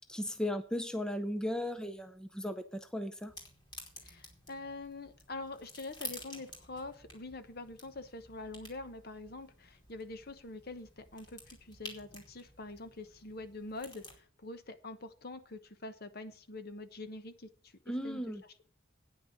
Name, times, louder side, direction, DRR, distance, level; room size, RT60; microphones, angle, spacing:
voice 1, 0.1-3.3 17.9-18.4, left 1 dB, 5° left, 8 dB, 0.5 m, -36 dB
sound 1, 3.2-14.2, left 2 dB, 20° left, 2.6 m, -51 dB
voice 2, 4.0-18.2, left 2 dB, 50° left, 11 dB, 1.0 m, -45 dB
9.3 x 6.0 x 8.3 m, 0.44 s
head